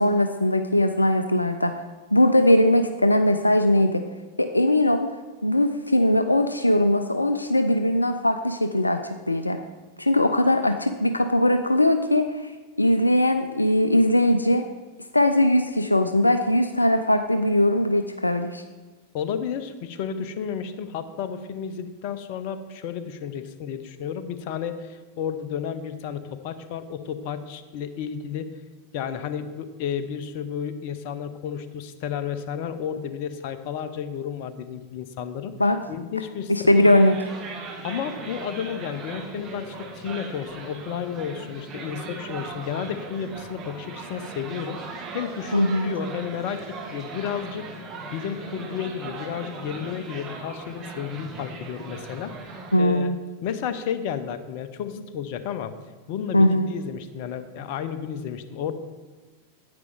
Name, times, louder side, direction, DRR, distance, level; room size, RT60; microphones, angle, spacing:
voice 1, 0.0-1.7 2.1-4.0 4.4-5.1 5.4-9.6 10.0-12.5 12.8-14.6 15.1-18.6 35.6-35.8 36.5-37.2 45.5-45.9 52.7-53.2 56.3-56.7, left 1 dB, 85° left, 8 dB, 0.4 m, -20 dB
voice 2, 19.1-28.5 28.9-35.5 35.9-36.9 37.8-47.7 48.1-53.1 53.4-55.7 56.1-58.7, left 8 dB, 45° left, 11 dB, 0.7 m, -32 dB
sound 1, 36.8-52.8, right 3 dB, 30° right, 1.4 m, -38 dB
9.6 x 8.8 x 3.5 m, 1.3 s
figure-of-eight pair, 90°, 0 cm